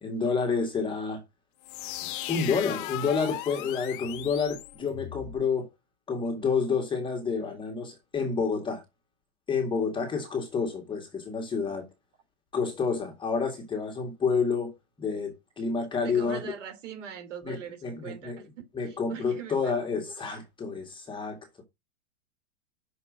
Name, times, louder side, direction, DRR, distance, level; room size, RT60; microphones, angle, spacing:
voice 1, 0.0-1.2 2.3-5.7 6.1-8.8 9.5-11.9 12.5-16.5 17.5-17.6 17.8-18.4 18.8-21.4, left 5 dB, 10° left, 1.9 m, -29 dB
sound 1, 1.6-5.4, left 15 dB, 40° left, 0.9 m, -37 dB
voice 2, 16.0-19.9 20.3-20.4, right 8 dB, 65° right, 3.4 m, -43 dB
6.3 x 5.5 x 5.1 m
hypercardioid pair, 135°, 40 cm